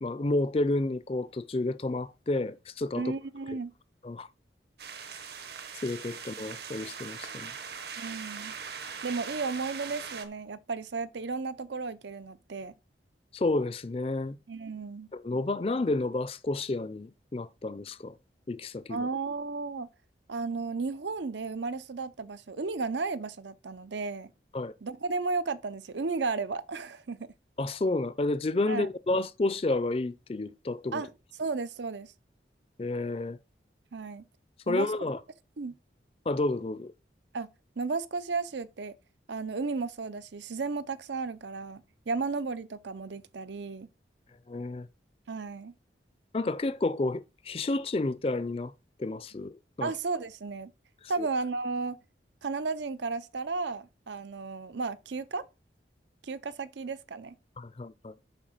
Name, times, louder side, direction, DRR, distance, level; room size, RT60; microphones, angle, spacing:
voice 1, 0.0-3.1 4.0-4.3 5.8-7.5 13.3-14.4 15.1-18.1 18.5-19.1 24.5-24.7 27.6-31.0 32.8-33.4 34.7-35.2 36.3-36.9 44.5-44.9 46.3-48.7 49.0-49.9 51.2-51.3 57.6-58.1, left 2 dB, 30° left, 0.4 m, -30 dB
voice 2, 3.0-3.7 8.0-8.5 9.0-12.7 14.5-15.1 18.9-19.9 20.3-24.3 24.8-27.3 28.7-28.9 30.9-31.1 31.4-32.1 33.9-34.3 34.7-34.9 35.6-35.8 37.3-37.5 37.8-38.9 39.3-43.9 45.3-45.7 49.8-50.7 51.1-52.0 52.4-55.4 56.2-57.4, right 4 dB, 80° right, 0.6 m, -34 dB
sound 1, 4.8-10.3, right 6 dB, 60° right, 1.1 m, -41 dB
7.3 x 4.9 x 6.5 m
head